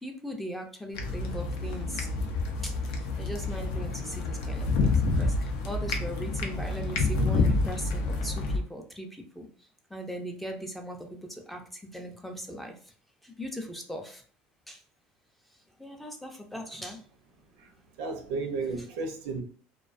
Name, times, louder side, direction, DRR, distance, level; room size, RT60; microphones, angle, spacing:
voice 1, 0.0-2.1 2.6-2.7 3.2-5.3 5.6-9.1 9.4-9.5 9.9-11.2 11.5-11.6 11.9-12.7 13.4-14.2 14.7-14.8 15.8-17.0 18.8-18.9, right 1 dB, 5° left, 0.4 m, -39 dB
sound 1, 0.9-8.6, left 3 dB, 90° left, 0.5 m, -28 dB
voice 2, 18.0-19.4, right 4 dB, 85° right, 0.6 m, -33 dB
2.3 x 2.2 x 2.4 m
cardioid pair, 120°, 4 cm